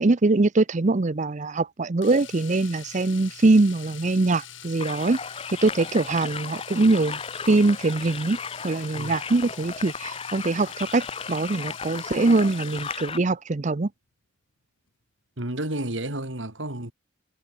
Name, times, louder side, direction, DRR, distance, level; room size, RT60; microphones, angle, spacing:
voice 1, 0.0-5.2 5.6-7.2 7.5-8.4 8.6-13.9, right 2 dB, 40° right, 0.6 m, -22 dB
Domestic sounds home sounds, 2.0-13.3 15.4-15.5 15.8-15.9, left 10 dB, 80° left, 3.9 m, -44 dB
sound 1, 4.8-13.2, left 5 dB, 30° left, 1.4 m, -36 dB
voice 2, 15.4-16.9, right 1 dB, 75° right, 4.0 m, -31 dB
head